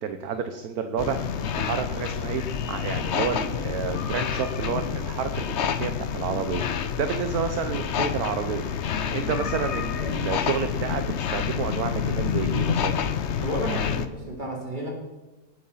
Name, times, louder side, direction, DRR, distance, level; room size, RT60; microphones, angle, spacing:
voice 1, 0.0-8.6 9.1-13.0, right 7 dB, 60° right, 8 dB, 1.2 m, -30 dB
sound 1, 1.0-14.1, left 7 dB, 55° left, 0.7 m, -28 dB
voice 2, 13.4-14.9, right 1 dB, 25° right, -2 dB, 4.0 m, -32 dB
19.0 x 8.6 x 5.7 m, 1.1 s
omnidirectional pair, 2.1 m